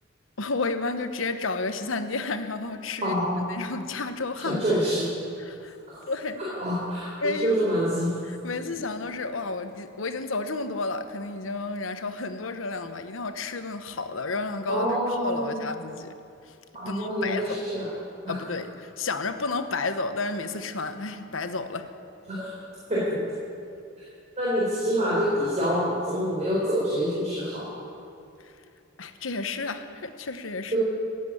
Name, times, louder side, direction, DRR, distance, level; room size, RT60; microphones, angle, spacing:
voice 1, 0.4-3.2 3.5-4.6 5.4-5.8 6.1-6.4 7.2-7.5 8.4-15.0 15.2-16.1 16.5-16.6 16.9-17.6 18.3-21.9 28.4-28.5 29.0-30.8, left 3 dB, 80° left, 9 dB, 1.0 m, -31 dB
voice 2, 3.0-3.4 4.4-5.1 5.9-6.0 6.6-8.1 14.7-15.6 16.7-17.9 18.2-18.3 22.3-22.5 22.9-23.2 24.4-27.7 30.7-30.8, equal, 35° right, -7 dB, 4.2 m, -26 dB
16.5 x 8.4 x 9.8 m, 2.6 s
head